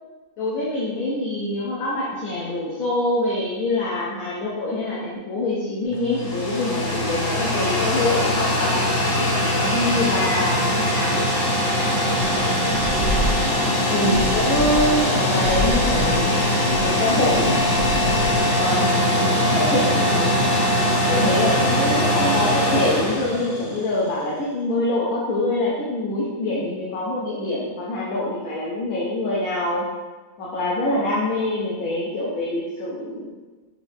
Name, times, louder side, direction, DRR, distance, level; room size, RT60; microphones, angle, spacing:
voice 1, 0.4-8.8 9.6-11.5 13.9-16.3 16.8-17.6 18.6-20.3 21.0-29.9 30.4-33.2, left 1 dB, 80° left, -6 dB, 1.2 m, -25 dB
sound 1, 5.9-24.0, left 1 dB, 55° left, 1.1 m, -21 dB
sound 2, 12.3-12.4 12.7-13.6 14.0-15.1 15.4-18.6, equal, 80° right, 1.1 m, -29 dB
sound 3, 21.1-23.9 24.4-24.5 24.7-24.8 25.1-25.2 26.1-26.2 26.6-26.7, left 3 dB, 40° left, 0.5 m, -36 dB
4.2 x 2.6 x 3.3 m, 1.2 s
omnidirectional pair, 1.5 m